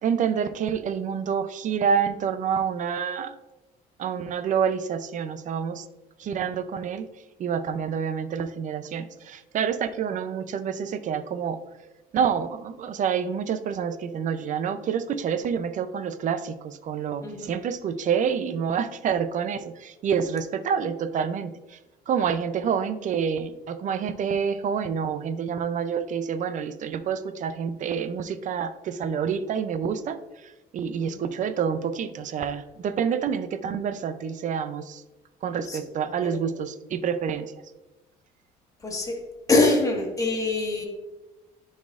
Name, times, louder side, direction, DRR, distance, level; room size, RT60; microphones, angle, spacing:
voice 1, 0.0-3.4 4.0-5.9 6.2-7.1 7.4-11.6 12.1-21.8 22.1-35.0 35.4-37.5, right 7 dB, 50° right, 13 dB, 0.5 m, -28 dB
voice 2, 38.8-39.2 39.5-40.8, left 2 dB, 20° left, 0 dB, 1.6 m, -24 dB
10.5 x 4.1 x 2.4 m, 1.1 s
cardioid pair, 110°, 17 cm